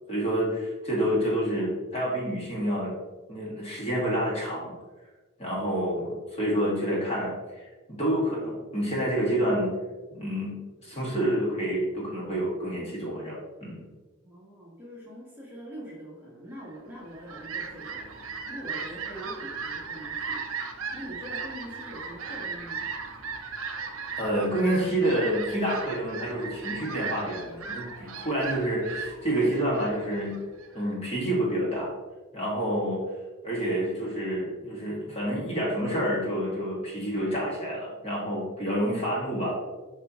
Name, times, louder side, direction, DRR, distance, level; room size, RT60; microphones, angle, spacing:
voice 1, 0.1-3.0 3.3-4.7 5.4-9.7 10.1-13.8 24.2-30.4 30.7-31.9 32.3-33.0 33.4-39.5, right 1 dB, 30° left, -5 dB, 2.0 m, -28 dB
voice 2, 14.2-20.6 20.9-22.9, equal, 10° right, -7 dB, 1.5 m, -43 dB
Fowl, 16.9-30.8, right 5 dB, 65° right, 0.8 m, -37 dB
8.0 x 4.9 x 3.1 m, 1.2 s
head